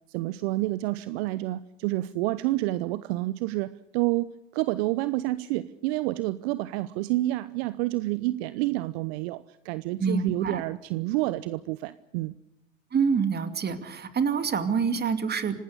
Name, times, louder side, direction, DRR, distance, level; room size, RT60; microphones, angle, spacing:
voice 1, 0.1-4.3 4.5-12.4, right 18 dB, 60° right, 16 dB, 0.9 m, -29 dB
voice 2, 10.0-10.6 12.9-15.6, right 6 dB, 25° right, 10 dB, 2.6 m, -26 dB
26.5 x 18.5 x 6.7 m, 0.86 s
hypercardioid pair, 85°, 36 cm